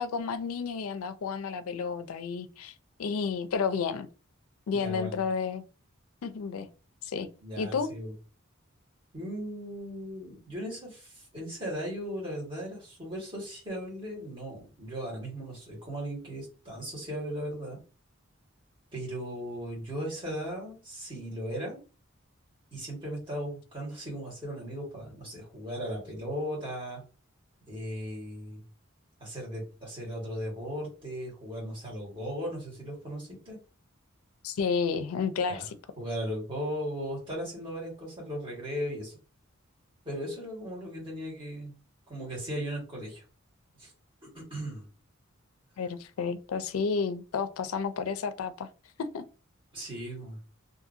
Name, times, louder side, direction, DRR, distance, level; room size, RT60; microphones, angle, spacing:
voice 1, 0.0-2.7 3.0-4.1 4.7-5.6 6.2-6.7 7.0-7.3 7.6-7.9 34.4-35.8 45.8-48.7 49.0-49.2, left 5 dB, 90° left, 0.4 m, -31 dB
voice 2, 4.7-5.2 7.4-8.1 9.1-17.8 18.9-21.8 22.7-27.0 27.7-28.6 29.2-33.6 35.5-35.6 36.0-39.2 40.0-41.8 42.1-43.2 43.8-43.9 44.3-44.9 49.7-50.4, equal, 25° right, 1.5 m, -37 dB
2.7 x 2.5 x 2.5 m
head